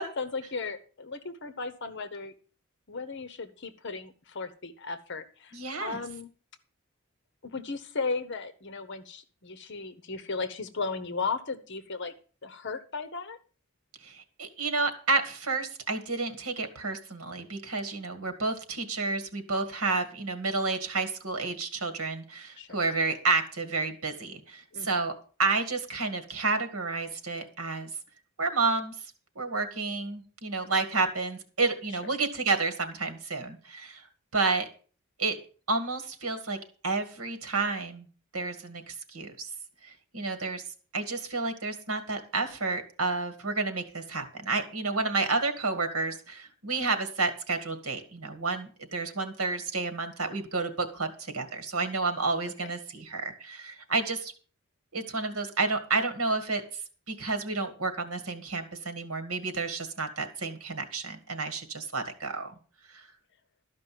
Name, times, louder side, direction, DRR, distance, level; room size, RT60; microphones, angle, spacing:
voice 1, 0.0-2.3 2.9-6.3 7.4-12.1 12.4-13.4 22.6-22.8 24.7-24.9 31.9-32.0, left 4 dB, 55° left, 10 dB, 1.0 m, -36 dB
voice 2, 5.5-6.0 14.0-25.1 25.4-27.9 28.4-28.9 29.4-34.1 34.3-34.7 35.2-35.4 35.7-36.6 36.8-38.1 38.3-39.5 39.8-40.6 40.9-54.3 54.9-56.6 57.1-62.5 62.9-63.1, right 3 dB, 75° right, 9 dB, 2.0 m, -30 dB
13.0 x 5.3 x 7.6 m, 0.40 s
head